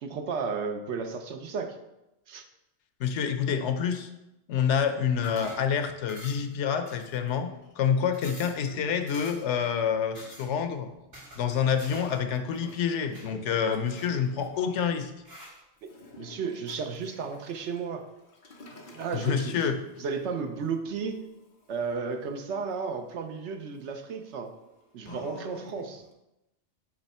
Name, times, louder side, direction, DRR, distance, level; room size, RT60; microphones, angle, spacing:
voice 1, 0.0-1.8 2.3-2.4 15.8-15.9 16.2-18.1 18.7-19.7 20.0-21.3 21.7-24.5 24.9-26.0, right 5 dB, 80° right, 6 dB, 1.0 m, -33 dB
voice 2, 3.0-4.1 4.5-7.5 7.8-10.9 11.4-15.1 19.1-19.8, left 7 dB, 90° left, 8 dB, 1.0 m, -27 dB
sound 1, 5.2-5.7 6.1-6.5 6.9-7.5 7.8-7.9 8.1-8.6 9.1-9.5 10.1-10.5 11.1-12.2 12.5-13.3 13.9-14.6 15.2-15.6, equal, 60° right, 2.6 m, -47 dB
Toilet flush, 7.6-7.7 8.2-10.1 11.3-14.9 15.8-26.1, left 3 dB, 50° left, 1.0 m, -50 dB
8.9 x 3.3 x 4.2 m, 0.92 s
omnidirectional pair, 1.2 m